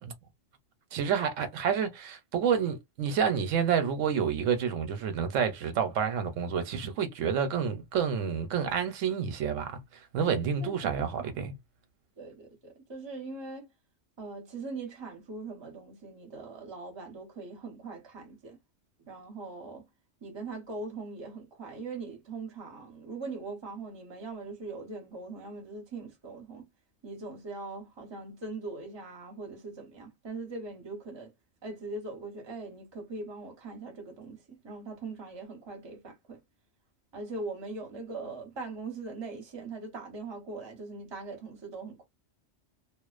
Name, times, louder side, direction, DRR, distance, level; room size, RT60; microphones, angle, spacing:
voice 1, 0.9-9.8 10.1-11.5, right 7 dB, 85° right, 1.0 m, -29 dB
voice 2, 10.6-11.3 12.2-13.7 14.2-18.6 19.1-19.9 20.2-26.7 27.0-31.3 31.6-36.4 37.1-42.0, right 3 dB, 25° right, 0.7 m, -41 dB
2.5 x 2.1 x 2.4 m
omnidirectional pair, 1.3 m